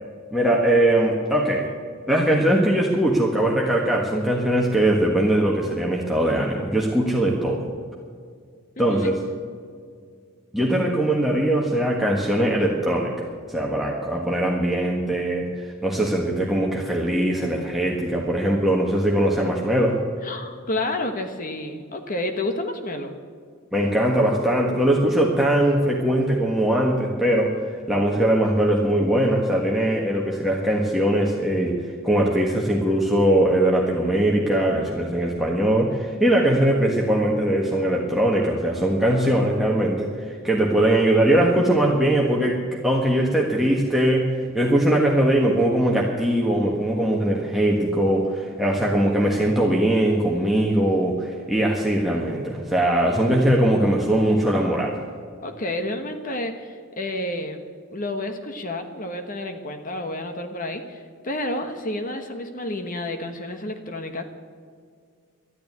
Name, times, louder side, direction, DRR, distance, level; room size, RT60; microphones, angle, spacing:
voice 1, 0.3-1.7 2.1-7.7 8.8-9.2 10.5-13.1 13.5-20.0 23.7-27.5 27.9-31.7 32.0-55.0, right 1 dB, ahead, -3 dB, 1.5 m, -21 dB
voice 2, 8.8-9.1 20.2-23.1 55.4-57.6 57.9-64.2, left 1 dB, 40° left, 6 dB, 1.2 m, -30 dB
13.0 x 10.0 x 9.6 m, 2.1 s
head